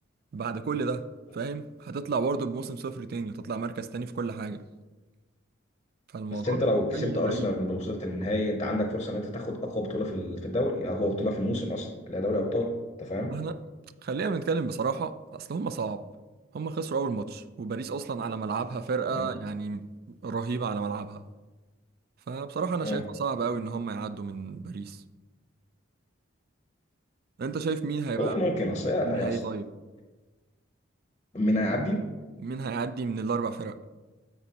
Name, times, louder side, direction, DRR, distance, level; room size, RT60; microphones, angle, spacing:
voice 1, 0.3-1.1 1.3-4.6 6.1-6.6 6.9-7.5 13.3-13.6 14.0-16.1 16.5-21.2 22.3-25.0 27.4-29.7 32.4-33.8, right 4 dB, 50° right, 0.3 m, -32 dB
voice 2, 6.3-12.7 13.0-13.4 19.1-19.3 22.8-23.0 28.2-29.4 31.3-32.1, left 1 dB, 25° left, 0.7 m, -28 dB
9.2 x 7.0 x 2.9 m
head